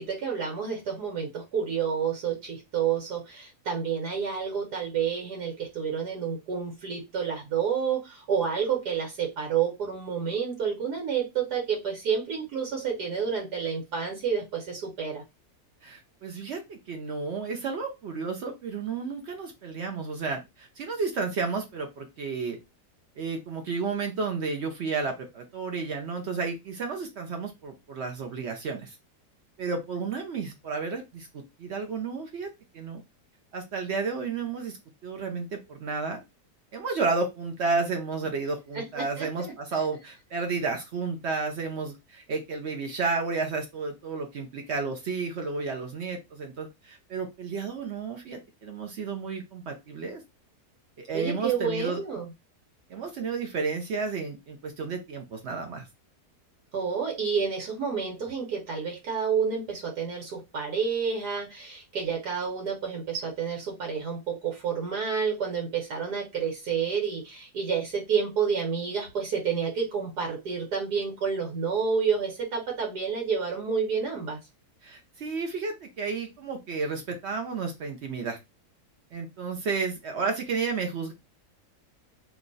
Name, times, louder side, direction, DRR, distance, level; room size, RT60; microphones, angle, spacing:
voice 1, 0.0-15.2 38.7-39.5 51.1-52.3 56.7-74.4, right 6 dB, 80° right, 0 dB, 1.5 m, -29 dB
voice 2, 15.8-22.6 23.2-29.0 29.6-32.5 32.7-33.0 33.5-34.8 35.0-36.2 36.7-50.2 51.0-52.0 52.9-55.9 74.8-78.4 79.1-81.1, right 4 dB, 60° right, 3 dB, 0.7 m, -32 dB
3.0 x 2.3 x 3.8 m, 0.24 s
omnidirectional pair, 1.7 m